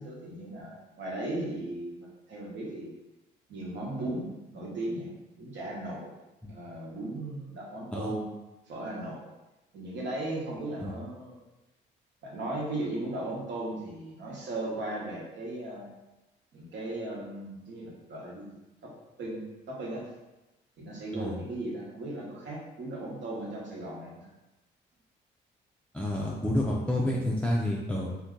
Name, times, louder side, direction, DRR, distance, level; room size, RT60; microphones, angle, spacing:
voice 1, 0.0-2.9 3.5-4.3 4.5-5.1 5.4-6.1 6.5-8.3 8.7-9.2 9.7-11.4 12.2-15.9 16.5-18.5 18.8-18.9 19.2-20.1 20.8-24.3, right 1 dB, 65° right, -4 dB, 1.0 m, -37 dB
voice 2, 25.9-28.2, left 1 dB, 5° left, -4 dB, 0.4 m, -29 dB
2.6 x 2.2 x 3.6 m, 1.0 s
cardioid pair, 90°, 20 cm